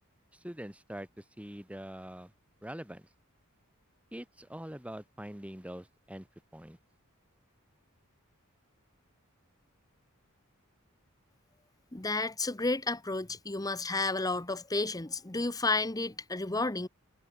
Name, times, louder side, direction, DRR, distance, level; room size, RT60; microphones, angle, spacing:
voice 1, 0.3-2.3 2.6-3.1 4.1-6.3 6.5-6.8, equal, 5° right, 2.3 m, -44 dB
voice 2, 11.9-16.9, left 3 dB, 15° left, 1.1 m, -31 dB
head